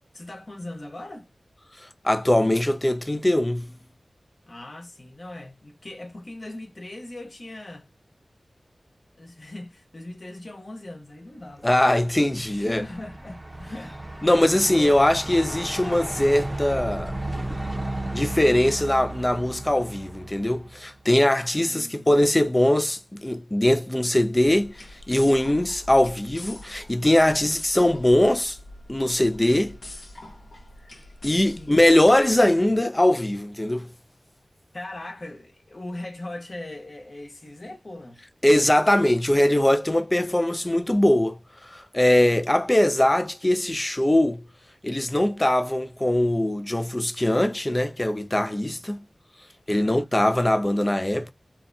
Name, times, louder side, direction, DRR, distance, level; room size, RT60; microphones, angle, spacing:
voice 1, 0.1-1.3 4.5-7.9 9.1-14.0 14.6-15.1 21.7-22.1 31.4-31.9 34.7-38.2 48.7-48.9 49.7-50.1, left 1 dB, 45° left, 0.9 m, -40 dB
voice 2, 2.0-3.7 11.6-12.8 14.2-17.2 18.1-28.6 28.9-29.8 31.2-33.9 38.4-41.4 41.7-44.4 44.8-49.0 49.7-51.3, left 1 dB, 20° left, 0.3 m, -21 dB
Truck, 11.6-21.0, right 1 dB, 20° right, 0.6 m, -34 dB
sound 1, 24.3-32.5, left 1 dB, 75° left, 0.8 m, -44 dB
2.6 x 2.2 x 2.6 m
wide cardioid pair, 65°, 0 cm